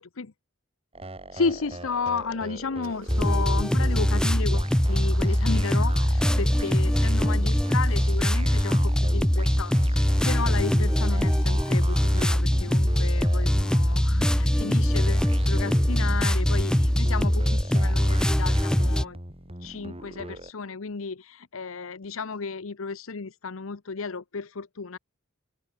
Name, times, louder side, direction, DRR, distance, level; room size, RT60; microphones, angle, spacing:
sound 1, 0.9-20.5, right 1 dB, 30° right, 6.3 m, -41 dB
voice 1, 1.3-19.2 19.6-25.0, left 4 dB, 80° left, 0.8 m, -33 dB
Engine starting, 2.8-10.1, right 3 dB, 70° right, 7.6 m, -55 dB
sound 2, 3.1-19.1, equal, 5° left, 0.4 m, -22 dB
open air
head